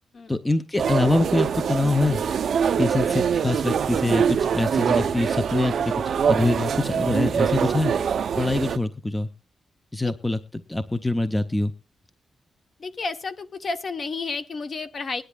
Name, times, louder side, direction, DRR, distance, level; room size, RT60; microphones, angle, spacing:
voice 1, 0.3-2.2 2.8-5.7 6.3-7.9 8.4-9.3 9.9-10.4 10.7-11.7, left 2 dB, 10° left, 11 dB, 0.5 m, -24 dB
sound 1, 0.8-8.8, right 7 dB, 60° right, 0.5 m, -24 dB
voice 2, 12.8-15.2, left 4 dB, 40° left, 9 dB, 0.8 m, -31 dB
21.0 x 10.0 x 2.3 m, 0.29 s
wide cardioid pair, 170°, 0 cm